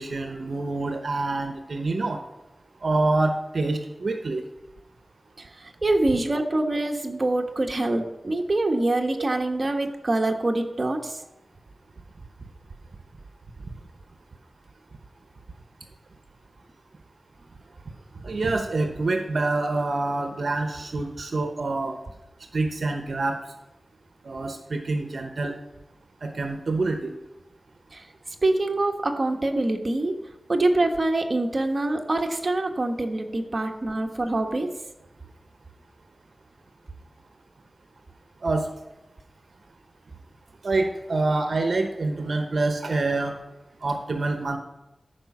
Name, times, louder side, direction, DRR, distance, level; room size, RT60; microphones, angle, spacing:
voice 1, 0.0-2.2 2.8-4.4 18.1-22.0 22.5-23.4 24.2-25.5 26.2-27.1 38.4-38.7 40.6-43.4 43.8-44.6, right 2 dB, 70° right, 5 dB, 0.8 m, -26 dB
voice 2, 5.8-11.1 28.4-30.1 30.5-34.7, right 2 dB, 45° right, 3 dB, 1.2 m, -25 dB
13.0 x 5.1 x 6.0 m, 0.98 s
wide cardioid pair, 80°, 0 cm